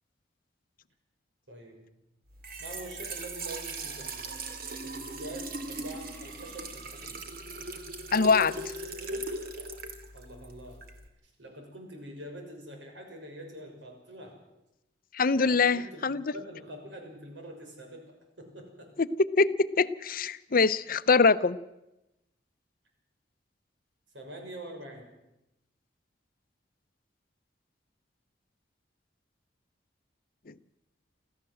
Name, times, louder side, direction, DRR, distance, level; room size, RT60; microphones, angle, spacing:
voice 1, 1.5-1.8 2.6-4.3 4.8-7.2 10.1-10.8 11.4-14.3 15.3-18.9 24.1-25.1, right 1 dB, 85° right, 3 dB, 6.3 m, -45 dB
Trickle dribble / Fill (with liquid), 2.3-11.1, right 2 dB, 55° right, 2.5 m, -39 dB
voice 2, 8.1-8.6 15.1-16.2 19.4-21.6 30.5-30.6, left 4 dB, 50° left, 14 dB, 0.7 m, -24 dB
26.5 x 14.5 x 7.7 m, 0.94 s
head